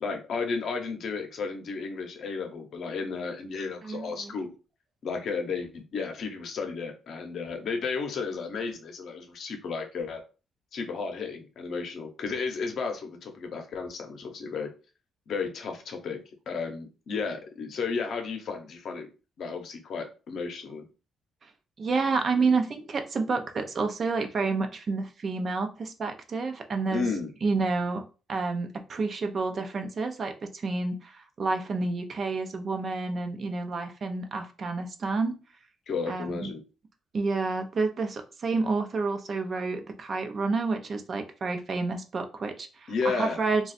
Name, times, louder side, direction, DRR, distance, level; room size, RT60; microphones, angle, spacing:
voice 1, 0.0-4.5 5.0-10.2 10.7-14.7 15.3-16.2 16.5-19.1 19.4-20.9 26.9-27.3 35.9-36.6 42.9-43.4, left 4 dB, 65° left, 4 dB, 0.7 m, -33 dB
voice 2, 3.8-4.3 21.8-27.1 27.4-28.0 28.3-35.4 36.1-36.5 37.1-43.7, right 3 dB, 45° right, 6 dB, 0.5 m, -29 dB
2.4 x 2.3 x 4.0 m, 0.33 s
cardioid pair, 90°, 0 cm